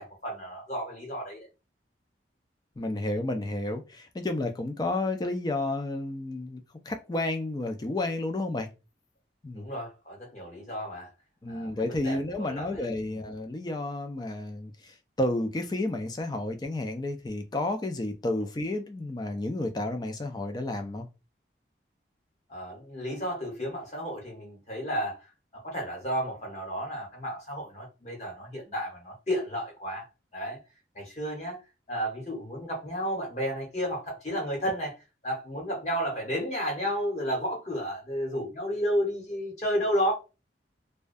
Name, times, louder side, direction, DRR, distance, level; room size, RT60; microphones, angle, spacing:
voice 1, 0.0-1.5 9.5-11.1 11.5-11.7 12.0-13.2 22.5-25.2 25.6-30.0 30.3-30.6 30.9-31.6 31.9-34.9 35.2-40.1, equal, 35° left, 1.0 m, -32 dB
voice 2, 2.8-8.7 9.4-9.7 11.4-21.1, left 2 dB, 20° left, 0.3 m, -31 dB
2.3 x 2.2 x 2.5 m
head